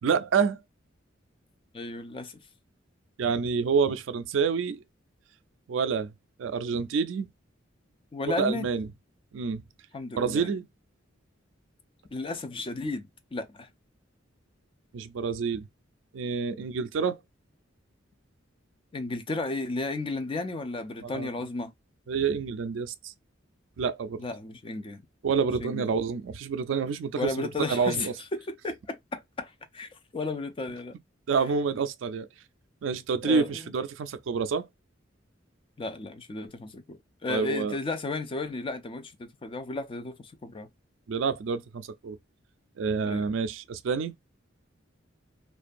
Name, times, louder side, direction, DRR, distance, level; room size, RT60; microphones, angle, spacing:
voice 1, 0.0-0.6 3.2-4.8 5.7-6.1 6.4-7.3 8.3-8.9 9.3-9.6 10.2-10.7 14.9-15.7 16.1-17.2 21.0-21.3 22.1-23.1 23.8-24.2 25.2-28.1 31.3-32.3 32.8-34.7 37.3-37.7 41.1-42.2 42.8-44.1, right 5 dB, 70° right, 0.4 m, -28 dB
voice 2, 1.7-2.4 8.1-8.7 9.9-10.5 12.1-13.7 18.9-21.7 24.2-25.0 25.6-25.8 27.1-28.1 28.4-30.9 33.2-33.6 35.8-40.7 43.0-43.3, left 3 dB, 25° left, 0.4 m, -34 dB
2.5 x 2.2 x 2.5 m
head